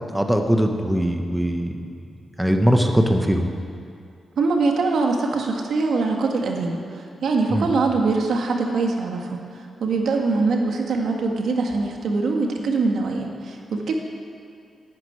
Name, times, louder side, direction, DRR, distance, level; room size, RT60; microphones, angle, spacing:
voice 1, 0.1-1.9 2.4-3.5 7.5-7.7, equal, 5° right, 4 dB, 1.1 m, -20 dB
voice 2, 4.4-9.4 9.8-13.9, right 3 dB, 75° right, 1 dB, 1.8 m, -23 dB
10.5 x 9.7 x 9.6 m, 2.4 s
cardioid pair, 90°, 0 cm